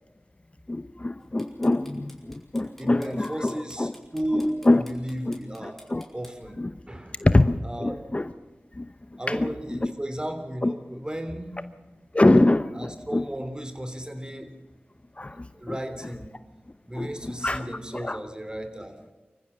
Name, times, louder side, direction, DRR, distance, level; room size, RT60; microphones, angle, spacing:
voice 1, 0.7-3.9 4.7-4.8 5.3-5.4 5.6-6.0 6.6-6.7 7.2-8.3 8.8-8.9 9.3-9.5 10.6-10.7 12.1-13.2 15.2-15.8 16.9-17.7 17.9-18.2, left 2 dB, 30° left, 11 dB, 0.8 m, -24 dB
sound 1, 1.2-6.3, left 1 dB, 5° left, 5.2 m, -51 dB
voice 2, 2.8-5.8 6.1-6.6 6.9-7.3 7.6-8.0 9.2-11.5 12.7-14.5 15.5-16.3 16.9-19.1, equal, 20° right, 8 dB, 3.2 m, -34 dB
25.0 x 15.0 x 7.2 m, 1.2 s
cardioid pair, 40°, 4 cm